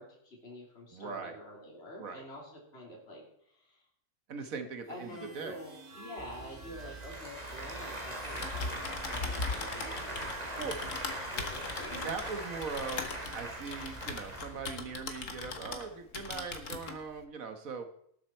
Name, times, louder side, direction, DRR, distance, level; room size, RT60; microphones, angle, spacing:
voice 1, 0.0-3.8 4.9-12.1, left 1 dB, 45° left, -1 dB, 3.3 m, -47 dB
voice 2, 0.9-1.4 2.0-2.2 4.3-5.6 10.6-10.8 11.9-13.1 13.3-17.9, right 5 dB, 65° right, 7 dB, 1.6 m, -40 dB
sound 1, 4.8-14.4, right 4 dB, 80° right, 2.4 m, -50 dB
Applause / Crowd, 6.2-14.9, right 1 dB, 25° right, 2.2 m, -41 dB
Typing, 8.2-15.9 16.1-17.0, left 4 dB, 60° left, 1.7 m, -39 dB
19.0 x 7.6 x 4.4 m, 0.69 s
omnidirectional pair, 1.6 m